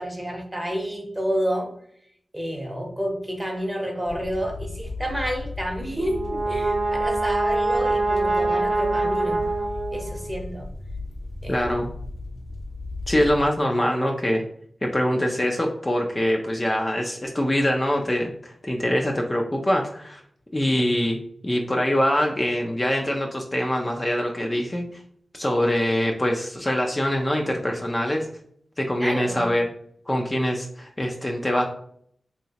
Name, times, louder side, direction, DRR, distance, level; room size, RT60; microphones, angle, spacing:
voice 1, 0.0-1.7 2.3-9.4 9.9-10.7 11.4-11.6 29.0-29.5, equal, 15° right, 2 dB, 0.8 m, -29 dB
sound 1, 4.0-13.5, left 2 dB, 80° left, 0.8 m, -36 dB
Brass instrument, 5.9-10.4, right 2 dB, 75° right, 0.7 m, -24 dB
voice 2, 11.5-11.9 13.1-14.4 14.8-20.2 20.5-21.2 21.4-25.0 25.3-28.3 28.8-29.7 30.1-31.6, equal, 25° left, 1 dB, 0.4 m, -24 dB
3.2 x 2.9 x 2.8 m, 0.63 s
wide cardioid pair, 65°, 0 cm